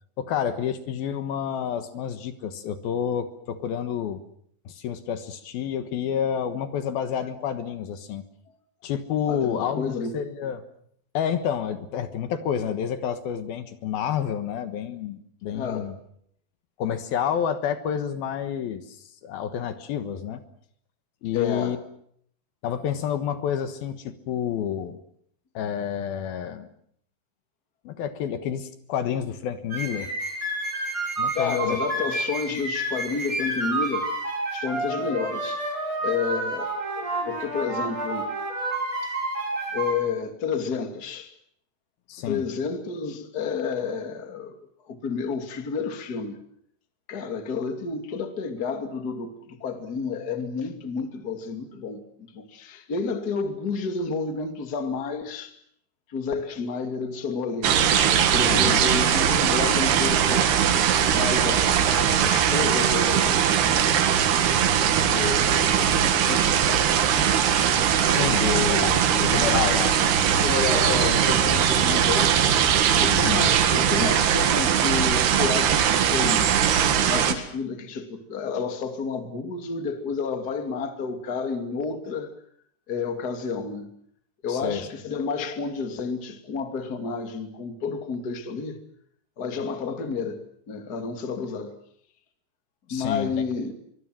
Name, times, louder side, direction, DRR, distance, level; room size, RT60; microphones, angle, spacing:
voice 1, 0.2-4.2 4.7-8.2 8.8-10.6 11.1-16.0 16.8-20.4 21.2-21.8 22.6-25.0 25.5-26.7 27.8-30.1 31.2-31.8 42.1-42.4 58.5-58.8 68.0-70.1 73.1-73.4 84.5-84.9 92.9-93.3, left 8 dB, 70° left, 3.2 m, -29 dB
voice 2, 9.3-10.1 15.5-15.9 21.3-21.8 31.3-34.1 34.5-35.6 36.0-38.3 39.7-41.3 42.3-44.6 44.9-46.4 47.1-55.5 56.1-60.6 61.1-61.8 62.2-63.4 64.5-66.9 68.1-68.8 70.3-72.4 73.0-76.5 77.1-82.3 82.9-83.9 84.4-88.8 89.4-91.7 92.9-93.7, left 5 dB, 30° left, 2.4 m, -30 dB
sound 1, 29.7-39.9, right 2 dB, 20° right, 6.2 m, -29 dB
sound 2, 57.6-77.3, right 8 dB, 80° right, 3.8 m, -21 dB
24.5 x 23.0 x 7.7 m
omnidirectional pair, 4.6 m